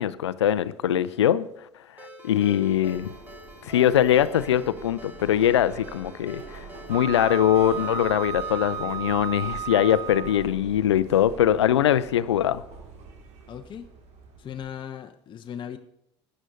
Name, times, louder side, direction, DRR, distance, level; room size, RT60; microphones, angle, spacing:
voice 1, 0.0-1.5 2.0-3.1 3.6-12.6, left 10 dB, 75° left, 0.5 m, -22 dB
Ringtone, 2.0-8.8, left 1 dB, 10° right, 2.4 m, -46 dB
Subway metro underground, 2.7-14.7, right 4 dB, 50° right, 2.2 m, -45 dB
Wind instrument woodwind instrument, 6.9-10.5, right 7 dB, 25° right, 0.4 m, -33 dB
voice 2, 13.5-13.9 14.4-15.8, left 9 dB, 35° left, 0.8 m, -38 dB
21.5 x 9.9 x 2.7 m
figure-of-eight pair, 60°, 15 cm